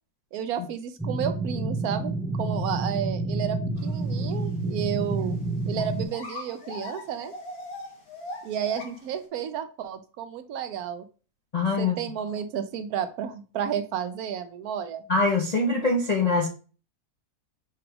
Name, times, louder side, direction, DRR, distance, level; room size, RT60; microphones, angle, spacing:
voice 1, 0.3-5.4 5.7-7.3 8.4-11.1 11.8-15.0, right 8 dB, 75° right, 9 dB, 1.0 m, -32 dB
sound 1, 1.0-6.1, right 2 dB, ahead, 0.8 m, -29 dB
sound 2, 3.8-4.2 4.5-4.6 5.2-5.3 5.7-9.1, left 2 dB, 70° left, 1.5 m, -41 dB
voice 2, 11.5-12.0 15.1-16.5, left 3 dB, 55° left, 0 dB, 0.4 m, -23 dB
5.9 x 2.3 x 3.4 m, 0.35 s
omnidirectional pair, 1.7 m